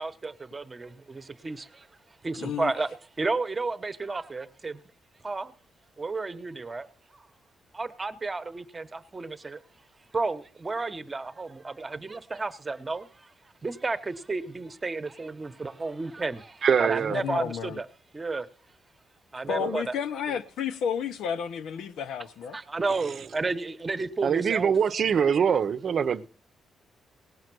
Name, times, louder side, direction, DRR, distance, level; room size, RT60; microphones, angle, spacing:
voice 1, 0.0-1.9 2.2-2.9 3.2-4.8 5.2-5.5 6.0-6.9 7.7-9.6 10.1-13.3 13.6-17.9 18.1-18.5 19.3-20.0 22.5-24.7, right 3 dB, 25° right, 1.0 m, -32 dB
voice 2, 2.4-2.7 17.1-17.8 19.5-22.6, left 8 dB, 85° left, 1.0 m, -31 dB
voice 3, 16.6-17.2 19.4-19.7 22.9-23.1 24.2-26.3, right 7 dB, 55° right, 0.7 m, -24 dB
18.0 x 6.5 x 6.1 m
cardioid pair, 120°, 0 cm